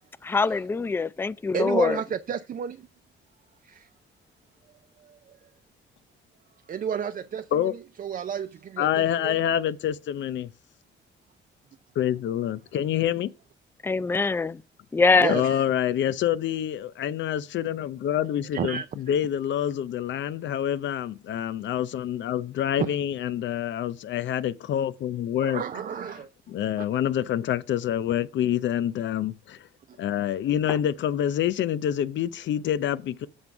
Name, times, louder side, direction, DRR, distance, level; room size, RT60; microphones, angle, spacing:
voice 1, 0.2-2.0 13.8-14.6 14.9-15.4, left 4 dB, 10° left, 0.3 m, -23 dB
voice 2, 1.5-2.9 3.6-3.9 5.0-5.2 6.7-9.4 15.2-15.6 18.5-18.9 22.8-22.9 25.4-26.3 29.9-30.0, right 8 dB, 45° right, 0.5 m, -32 dB
voice 3, 8.8-10.5 12.0-13.3 15.3-25.6 26.5-29.7 30.0-33.3, left 10 dB, 70° left, 0.6 m, -27 dB
7.9 x 3.8 x 5.8 m
cardioid pair, 90°, 20 cm